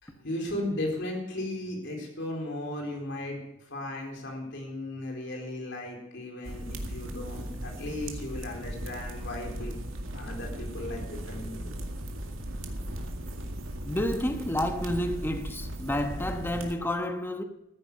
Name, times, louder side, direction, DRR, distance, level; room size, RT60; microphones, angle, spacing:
voice 1, 0.0-3.4 3.7-9.7 10.1-11.7, left 1 dB, 60° left, 4.1 m, -36 dB
sound 1, 6.4-16.7, right 1 dB, 80° right, 2.1 m, -37 dB
voice 2, 13.8-17.4, left 1 dB, 10° left, 1.1 m, -30 dB
14.5 x 9.9 x 6.8 m
head